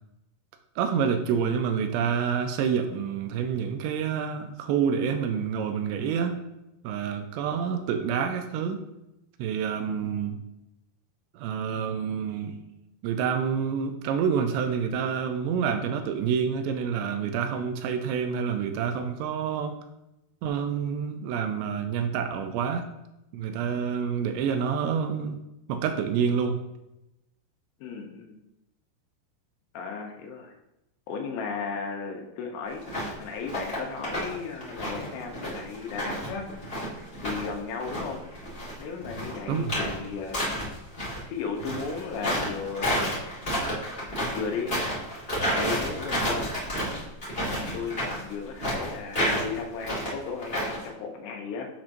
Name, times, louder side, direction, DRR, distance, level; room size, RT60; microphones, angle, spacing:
voice 1, 0.8-6.4 6.8-8.8 9.4-10.4 11.3-12.6 13.0-19.8 20.4-22.9 23.3-25.4 25.7-26.6 39.5-39.8, right 7 dB, 85° right, 7 dB, 2.7 m, -28 dB
voice 2, 27.8-28.4 29.7-30.5 31.1-32.8 33.2-36.5 37.2-38.2 38.8-40.4 41.2-43.2 44.2-44.8 45.6-46.5 47.5-51.7, left 5 dB, 80° left, 2 dB, 2.9 m, -35 dB
sound 1, 32.8-33.1 33.4-34.3 34.6-37.5 37.8-41.2 41.6-50.9, equal, 65° left, 0.5 m, -30 dB
7.3 x 5.8 x 2.6 m, 0.91 s
omnidirectional pair, 5.0 m